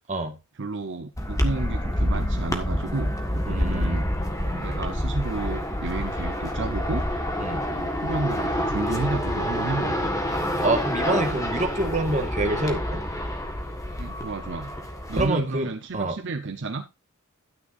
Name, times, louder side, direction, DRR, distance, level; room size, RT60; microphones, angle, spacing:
voice 1, 0.5-4.0 4.5-7.0 7.7-10.1 14.0-14.7 15.1-16.8, right 3 dB, 55° right, 0.8 m, -31 dB
sound 1, 1.2-15.3, equal, 15° left, 1.5 m, -27 dB
voice 2, 3.5-4.1 7.4-7.6 10.6-13.0 15.2-16.2, right 2 dB, 35° right, 1.6 m, -27 dB
12.0 x 9.5 x 2.6 m
head